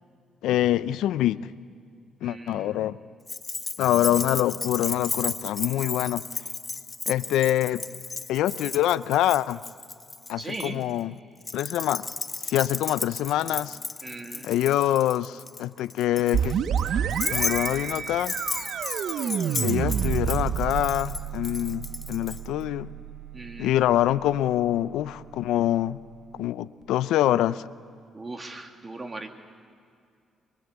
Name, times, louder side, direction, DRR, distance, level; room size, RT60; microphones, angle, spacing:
voice 1, 0.4-1.4 2.2-3.0 3.8-6.3 7.1-7.8 8.3-9.6 10.3-11.1 11.5-12.1 12.4-13.8 14.4-16.5 17.3-18.3 19.6-22.9 23.6-26.0 26.4-27.7, left 13 dB, 90° left, 16 dB, 0.6 m, -25 dB
voice 2, 2.2-2.8 10.4-10.8 14.0-14.5 23.3-23.8 28.1-29.3, right 2 dB, 25° right, 5 dB, 2.3 m, -38 dB
Keys jangling, 3.3-10.7 11.4-22.4, left 3 dB, 25° left, 0.7 m, -34 dB
sound 1, 16.3-25.9, right 8 dB, 70° right, 0.8 m, -30 dB
24.0 x 22.5 x 8.2 m, 2.3 s
cardioid pair, 90°, 0 cm